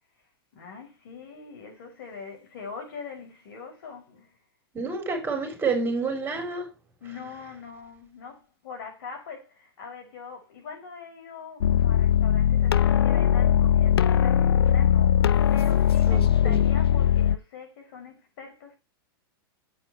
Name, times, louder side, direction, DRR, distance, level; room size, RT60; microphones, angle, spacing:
voice 1, 0.5-4.4 4.8-5.3 7.0-18.8, left 5 dB, 65° left, 5.4 m, -43 dB
voice 2, 4.7-6.7 16.1-16.6, right 4 dB, 15° right, 3.5 m, -29 dB
sound 1, 11.6-17.4, left 10 dB, 85° left, 0.4 m, -20 dB
8.2 x 8.0 x 4.6 m
hypercardioid pair, 120°, 13 cm